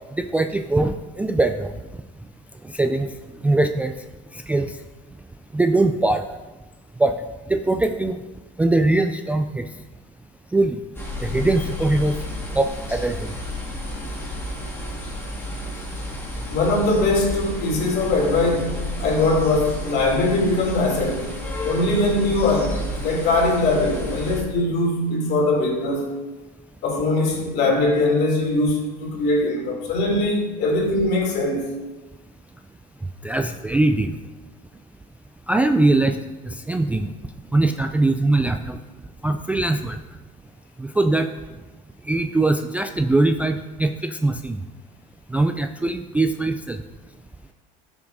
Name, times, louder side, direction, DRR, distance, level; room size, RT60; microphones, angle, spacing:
voice 1, 0.2-1.7 2.7-3.1 3.4-3.9 4.3-4.8 5.5-6.2 7.0-7.1 7.5-8.2 8.6-9.6 10.5-10.8 11.2-12.2 12.6-13.3 33.2-34.1 35.5-36.2 36.4-37.1 37.5-38.8 39.2-40.0 40.8-41.3 42.1-44.6 45.3-46.8, right 2 dB, 5° right, 6 dB, 0.3 m, -21 dB
sound 1, 10.9-24.4, left 1 dB, 10° left, 2.1 m, -31 dB
voice 2, 16.5-21.3 21.6-26.1 26.8-31.7, left 2 dB, 55° left, -1 dB, 2.9 m, -21 dB
12.5 x 7.1 x 2.7 m, 1.2 s
supercardioid pair, 105°, 20 cm